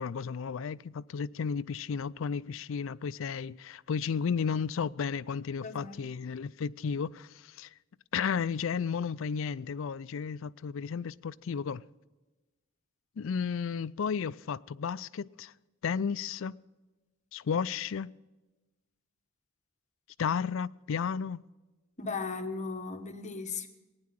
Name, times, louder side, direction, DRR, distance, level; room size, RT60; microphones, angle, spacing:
voice 1, 0.0-7.7 8.1-11.8 13.2-15.5 15.8-16.5 17.3-18.1 20.2-21.4, left 6 dB, 70° left, 0.4 m, -33 dB
voice 2, 5.6-6.0 22.0-23.7, left 4 dB, 35° left, 1.3 m, -37 dB
18.0 x 9.7 x 7.6 m
head